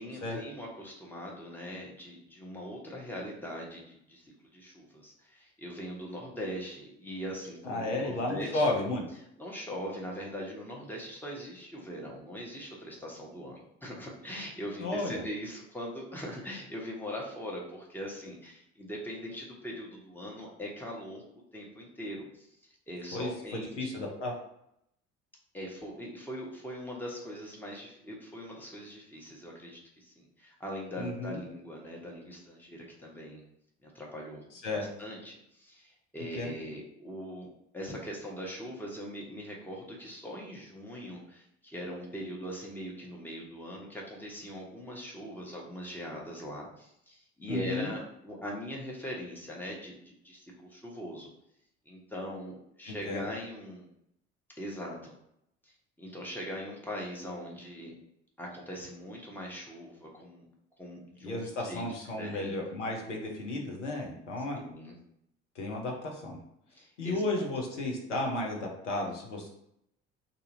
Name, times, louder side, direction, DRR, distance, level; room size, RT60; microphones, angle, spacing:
voice 1, 0.0-8.7 9.4-22.5 22.9-23.9 25.5-33.4 33.8-34.4 34.7-37.5 37.7-51.3 51.9-53.9 54.6-55.1 55.6-57.9 58.4-60.5 60.8-61.8 62.2-62.5 64.6-64.9 66.7-67.4, equal, 5° left, -3 dB, 1.0 m, -41 dB
voice 2, 7.6-9.0 14.8-15.2 23.1-24.3 31.0-31.4 34.6-34.9 36.4-36.5 47.5-47.9 52.8-53.3 61.2-64.6 65.5-66.4 67.0-69.5, left 2 dB, 80° left, 0 dB, 0.7 m, -33 dB
2.7 x 2.6 x 4.0 m, 0.77 s
figure-of-eight pair, 55°, 35 cm